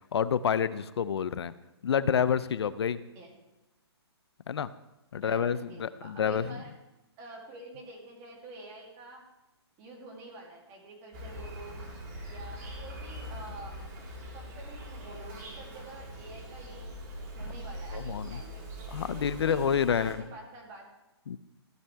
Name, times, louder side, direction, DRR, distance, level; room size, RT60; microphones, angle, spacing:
voice 1, 0.1-1.5 1.8-3.0 4.5-4.7 5.1-6.6 17.9-18.4 18.9-20.2 21.3-21.4, left 7 dB, 70° left, 15 dB, 0.5 m, -28 dB
voice 2, 5.1-6.7 7.2-9.2 9.8-11.8 12.2-13.9 14.3-16.9 17.3-18.6 19.1-19.6 19.9-20.9, right 2 dB, 20° right, -1 dB, 2.7 m, -47 dB
Insect, 11.1-20.1, equal, 45° right, 3.5 m, -42 dB
15.5 x 8.1 x 3.4 m, 0.98 s
hypercardioid pair, 160°, 14 cm